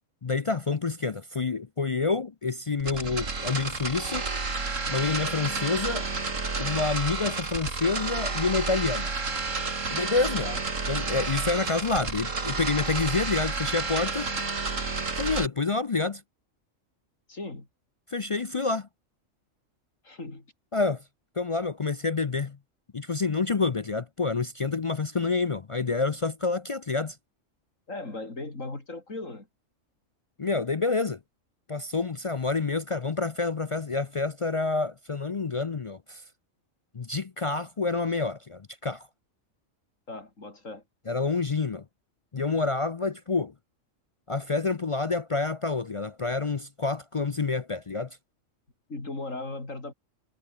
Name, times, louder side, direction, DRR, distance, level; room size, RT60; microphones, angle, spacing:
voice 1, 0.2-4.3 4.9-6.1 6.6-9.1 9.9-10.5 10.9-14.3 15.2-16.2 18.1-18.9 20.7-21.0 21.4-22.6 22.9-27.2 30.4-31.2 31.7-36.2 36.9-39.1 41.1-41.8 42.3-43.5 44.3-48.2, left 4 dB, 45° left, 0.4 m, -28 dB
sound 1, 2.8-15.5, right 4 dB, 70° right, 3.2 m, -30 dB
voice 2, 10.4-10.9 17.3-17.7 20.0-20.5 27.9-29.5 40.1-40.8 48.9-49.9, left 2 dB, 75° left, 5.0 m, -38 dB
omnidirectional pair, 1.4 m